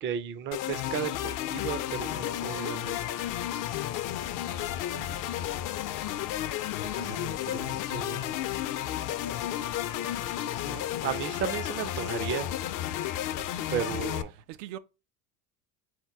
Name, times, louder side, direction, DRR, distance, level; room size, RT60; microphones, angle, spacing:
voice 1, 0.0-3.1 6.8-8.3 10.6-12.5 12.9-13.1 13.7-14.3, right 8 dB, 25° right, 0.4 m, -35 dB
sound 1, 0.5-14.2, left 12 dB, 45° left, 0.5 m, -32 dB
voice 2, 3.9-5.4 9.9-10.8 14.0-14.8, right 14 dB, 85° right, 0.6 m, -47 dB
4.4 x 2.1 x 4.5 m
supercardioid pair, 95°, 47 cm